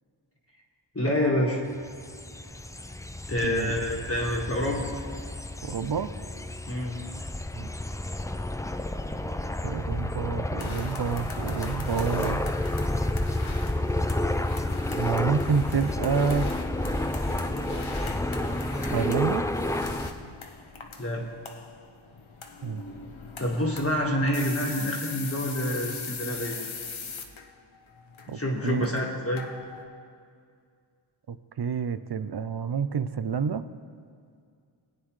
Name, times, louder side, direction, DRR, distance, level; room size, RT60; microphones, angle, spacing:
voice 1, 0.9-1.6 3.3-4.8 6.7-6.9 21.0-21.2 23.4-26.6 28.3-29.5, left 1 dB, 30° left, -2 dB, 1.6 m, -27 dB
sound 1, 1.8-20.1, left 1 dB, 5° left, 0.4 m, -30 dB
voice 2, 3.4-3.8 5.6-6.1 7.5-7.7 9.6-12.5 14.9-16.5 18.9-19.4 22.6-22.9 28.3-28.9 31.3-33.6, right 6 dB, 55° right, 12 dB, 0.6 m, -28 dB
sound 2, 10.6-29.8, left 4 dB, 70° left, 1.0 m, -41 dB
19.5 x 9.0 x 3.2 m, 2.2 s
wide cardioid pair, 60°, 49 cm